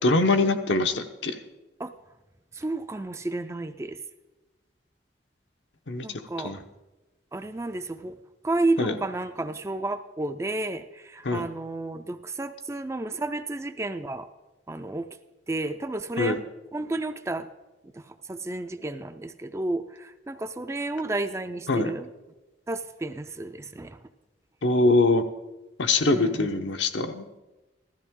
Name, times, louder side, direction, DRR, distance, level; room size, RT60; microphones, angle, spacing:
voice 1, 0.0-1.3 5.9-6.0 6.4-6.6 8.8-8.9 11.2-11.5 16.2-16.4 21.7-21.9 24.6-25.2 25.8-27.2, left 2 dB, 75° left, 7 dB, 0.9 m, -23 dB
voice 2, 2.5-4.0 6.0-6.6 7.3-8.2 8.4-14.3 14.7-15.1 15.5-16.4 16.7-17.5 17.9-22.1 22.7-24.0 26.1-26.5, right 2 dB, 15° right, 9 dB, 0.4 m, -31 dB
15.5 x 13.5 x 3.7 m, 1.1 s
head